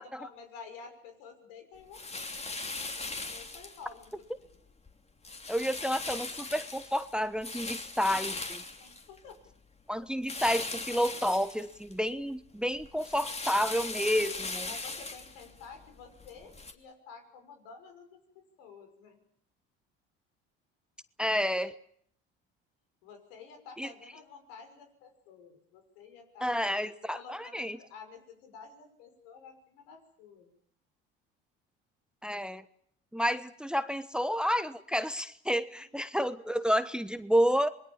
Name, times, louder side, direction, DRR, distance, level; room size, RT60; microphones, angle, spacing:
voice 1, 0.0-2.6 3.3-4.5 8.8-9.4 14.7-18.2 18.6-19.2 23.0-26.6 27.1-30.5 35.7-35.9, left 5 dB, 80° left, 5 dB, 6.3 m, -51 dB
sound 1, 1.9-4.1 4.5-4.9 5.2-9.5 10.2-12.1 12.4-16.7, left 3 dB, 20° left, 3.0 m, -39 dB
voice 2, 5.5-8.6 9.9-14.7 21.2-21.7 23.8-23.9 26.4-27.8 32.2-32.6 33.1-37.7, equal, 5° right, 13 dB, 1.1 m, -30 dB
27.0 x 21.0 x 7.3 m, 0.64 s
supercardioid pair, 80°, 29 cm